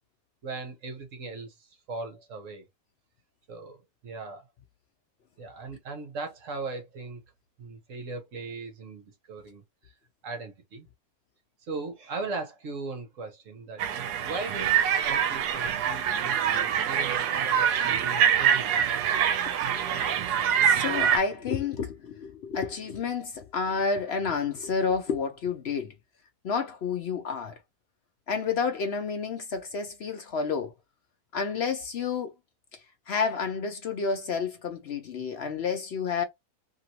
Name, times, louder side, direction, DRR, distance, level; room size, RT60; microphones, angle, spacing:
voice 1, 0.4-2.7 3.5-4.5 5.4-7.2 7.6-9.6 10.2-10.9 11.7-13.8 14.2-18.9, right 3 dB, 60° right, 1.2 m, -38 dB
sound 1, 13.8-21.2, right 8 dB, 85° right, 1.2 m, -25 dB
voice 2, 19.7-20.2 20.6-25.9 26.4-27.5 28.3-30.7 31.3-32.3 33.1-36.2, left 5 dB, 65° left, 0.6 m, -30 dB
2.9 x 2.9 x 2.7 m
omnidirectional pair, 1.7 m